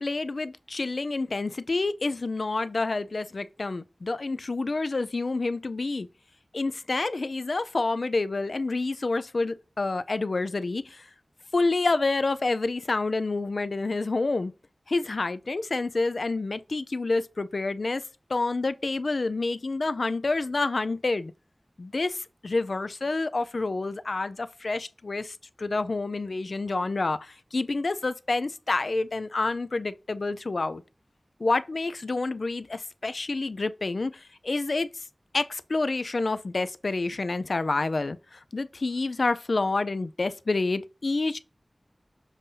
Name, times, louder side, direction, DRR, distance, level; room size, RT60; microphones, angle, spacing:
voice 1, 0.0-6.1 6.5-11.1 11.5-14.5 14.9-18.0 18.3-21.3 21.8-30.8 31.4-35.0 35.3-41.4, left 3 dB, 75° left, 0.4 m, -28 dB
7.3 x 2.7 x 5.4 m
wide cardioid pair, 65°, 0 cm